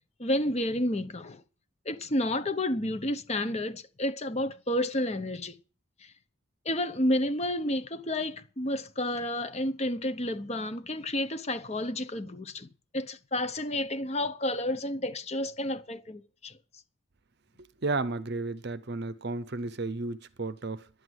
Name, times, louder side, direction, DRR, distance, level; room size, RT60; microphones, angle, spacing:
voice 1, 0.2-1.4 1.9-5.6 6.0-6.1 6.6-16.6, left 1 dB, 30° left, 0.9 m, -30 dB
voice 2, 17.8-20.9, right 3 dB, 50° right, 0.7 m, -33 dB
11.0 x 8.1 x 9.3 m
head